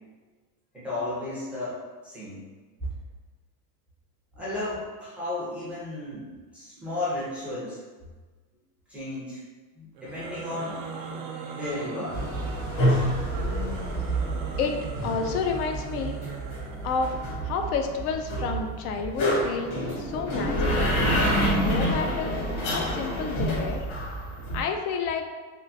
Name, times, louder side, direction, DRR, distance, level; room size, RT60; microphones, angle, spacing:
voice 1, 0.7-2.4 4.3-7.8 8.9-9.4 9.8-10.8 11.5-12.2, left 2 dB, 5° right, -11 dB, 0.4 m, -34 dB
sound 1, 9.9-17.3, right 3 dB, 90° right, 0.8 m, -39 dB
sound 2, 12.1-24.6, equal, 45° left, 1.2 m, -28 dB
voice 2, 14.6-16.2 16.8-21.0 21.6-22.4 22.6-23.9 24.5-25.2, left 5 dB, 70° left, 5 dB, 0.5 m, -30 dB
3.5 x 2.4 x 2.6 m, 1.4 s
supercardioid pair, 155°, 47 cm